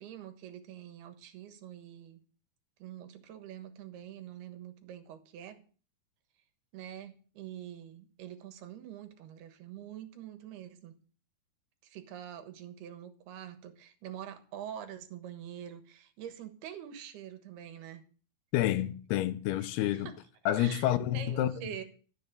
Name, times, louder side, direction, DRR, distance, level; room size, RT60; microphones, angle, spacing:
voice 1, 0.0-2.2 2.8-5.6 6.7-10.9 11.8-18.0 19.9-20.2 20.6-21.8, right 10 dB, 85° right, 3.4 m, -45 dB
voice 2, 18.5-20.1 20.5-21.7, left 13 dB, 85° left, 2.8 m, -29 dB
12.5 x 7.3 x 6.7 m
omnidirectional pair, 4.5 m